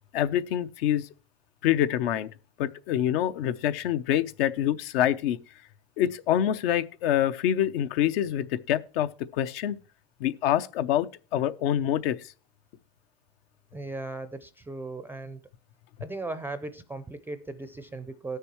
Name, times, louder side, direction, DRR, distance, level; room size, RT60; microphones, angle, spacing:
voice 1, 0.1-1.1 1.6-2.3 2.6-5.4 6.0-9.8 10.2-12.2, left 11 dB, 75° left, 0.7 m, -26 dB
voice 2, 13.7-15.4 16.0-18.4, right 2 dB, 5° right, 0.4 m, -37 dB
18.5 x 6.7 x 3.0 m
supercardioid pair, 125°, 29 cm